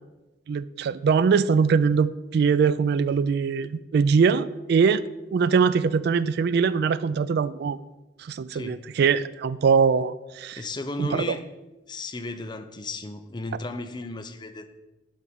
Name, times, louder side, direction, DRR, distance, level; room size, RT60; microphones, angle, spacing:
voice 1, 0.5-5.0 5.3-7.8 8.2-10.6 11.0-11.2, right 5 dB, 60° right, 17 dB, 0.3 m, -22 dB
voice 2, 8.5-8.9 10.5-11.4 11.9-14.7, left 2 dB, 25° left, 9 dB, 0.6 m, -34 dB
11.0 x 4.9 x 5.7 m, 1.1 s
head